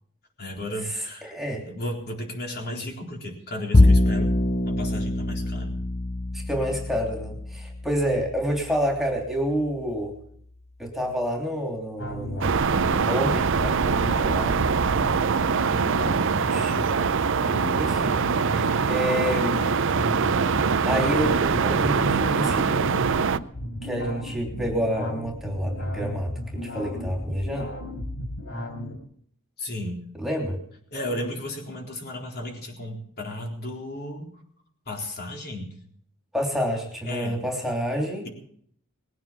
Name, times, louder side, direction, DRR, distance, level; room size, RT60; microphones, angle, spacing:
voice 1, 0.4-1.3 1.7-4.4 4.6-5.8 29.6-30.1 30.9-34.4 34.9-35.7 37.0-37.4, left 1 dB, 50° left, 1 dB, 4.0 m, -34 dB
voice 2, 1.2-1.6 6.3-10.1 10.8-12.5 13.0-14.6 16.4-16.8 17.8-18.2 18.5-19.6 20.8-22.9 23.8-27.7 30.2-30.6 36.3-38.3, equal, ahead, 0 dB, 3.2 m, -28 dB
Bowed string instrument, 3.7-10.2, left 1 dB, 30° left, 0.9 m, -24 dB
sound 1, 12.0-29.0, equal, 65° left, 4.1 m, -35 dB
sound 2, 12.4-23.4, right 5 dB, 60° right, 0.6 m, -23 dB
20.5 x 9.4 x 7.4 m, 0.63 s
head